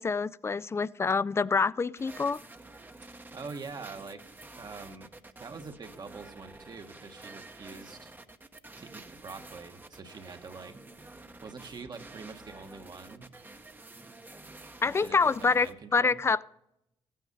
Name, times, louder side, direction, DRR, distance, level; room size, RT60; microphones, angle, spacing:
voice 1, 0.0-2.4 14.8-15.7 15.9-16.4, left 4 dB, 25° left, 0.3 m, -26 dB
sound 1, 2.0-15.7, right 2 dB, 20° right, 0.9 m, -49 dB
voice 2, 3.0-4.2 4.6-8.1 8.8-10.8 11.4-13.3 14.8-16.2, right 4 dB, 45° right, 1.3 m, -45 dB
14.5 x 9.2 x 5.3 m
cardioid pair, 80°, 10 cm